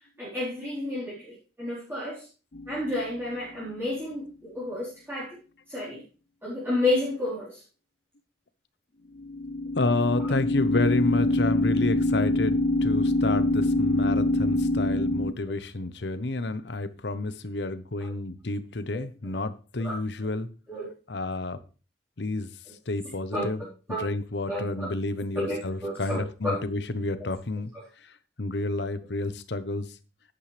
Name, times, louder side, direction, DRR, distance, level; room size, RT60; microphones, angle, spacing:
voice 1, 0.2-2.2 2.7-5.4 5.7-6.0 6.4-7.6 10.2-10.3 18.9-19.0 19.8-20.0 20.7-20.9 23.3-24.0 24.5-24.9 25.3-26.6 27.7-27.8, left 1 dB, 15° right, -10 dB, 4.3 m, -31 dB
sound 1, 2.5-3.1 9.2-15.3, left 1 dB, 50° left, 0.6 m, -25 dB
voice 2, 9.7-20.5 21.1-21.6 22.2-22.5 22.9-23.6 24.0-27.7 28.4-29.9, left 2 dB, 70° left, 13 dB, 0.9 m, -30 dB
11.0 x 10.0 x 3.4 m, 0.34 s
head